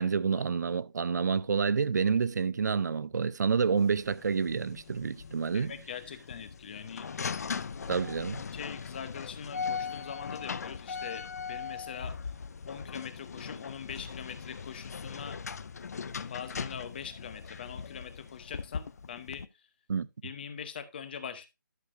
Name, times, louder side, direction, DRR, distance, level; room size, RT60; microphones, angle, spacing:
voice 1, 0.0-5.7 7.9-8.4 19.9-20.1, right 5 dB, 55° right, 0.5 m, -28 dB
sound 1, 3.8-19.5, left 5 dB, 50° left, 0.6 m, -40 dB
voice 2, 5.5-7.1 8.3-12.1 12.7-15.4 16.2-19.5 20.2-21.5, left 7 dB, 30° left, 0.9 m, -43 dB
11.5 x 6.8 x 2.6 m
hypercardioid pair, 170°, 11 cm